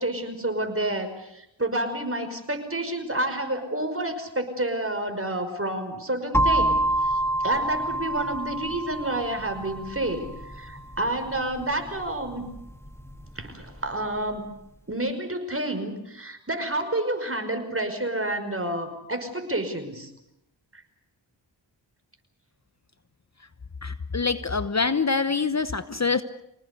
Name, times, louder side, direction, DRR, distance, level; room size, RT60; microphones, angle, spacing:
voice 1, 0.0-12.5 13.4-14.5 14.9-20.1 20.7-20.8, right 1 dB, 30° right, 7 dB, 5.5 m, -29 dB
sound 1, 6.3-14.2, right 1 dB, 5° left, 2.1 m, -28 dB
voice 2, 23.8-26.2, left 4 dB, 35° left, 12 dB, 1.1 m, -25 dB
26.0 x 19.0 x 8.4 m, 0.83 s
cardioid pair, 45°, 46 cm